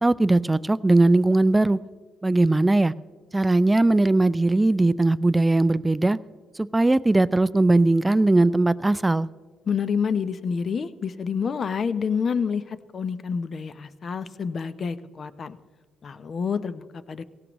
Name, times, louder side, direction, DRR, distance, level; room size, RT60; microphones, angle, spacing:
voice 1, 0.0-1.8 2.2-2.9 3.3-6.2 6.6-9.3, right 2 dB, 15° right, 17 dB, 0.4 m, -19 dB
voice 2, 9.7-15.6 16.0-17.2, left 6 dB, 50° left, 14 dB, 0.6 m, -28 dB
18.0 x 15.5 x 3.0 m, 1.4 s
cardioid pair, 90°, 0 cm